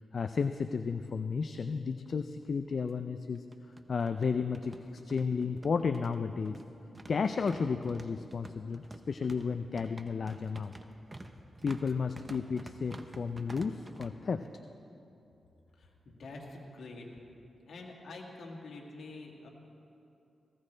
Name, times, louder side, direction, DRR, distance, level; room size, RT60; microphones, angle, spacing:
voice 1, 0.1-3.4 3.9-6.6 7.1-10.7 11.6-14.5, left 5 dB, 60° left, 8 dB, 0.4 m, -33 dB
sound 1, 2.0-2.1 2.4-2.5 3.3-14.1, right 2 dB, 25° right, 0.8 m, -50 dB
voice 2, 15.7-17.1 17.7-19.5, left 2 dB, 75° left, 0 dB, 2.0 m, -46 dB
18.5 x 16.0 x 3.3 m, 2.7 s
cardioid pair, 75°, 0 cm